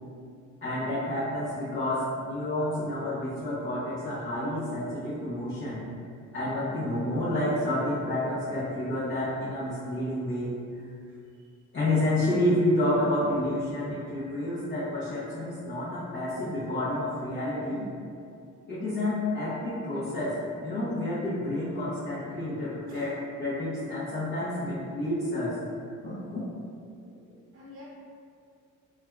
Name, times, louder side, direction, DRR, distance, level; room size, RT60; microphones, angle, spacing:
voice 1, 0.6-5.8 6.3-10.5 11.7-17.8 18.7-20.4 20.6-25.5 26.0-26.4, left 1 dB, 40° left, -10 dB, 0.7 m, -29 dB
voice 2, 11.1-11.6 22.9-23.1 27.1-27.8, left 2 dB, 45° right, -6 dB, 0.7 m, -53 dB
3.4 x 2.2 x 2.2 m, 2.3 s
cardioid pair, 90°, 30 cm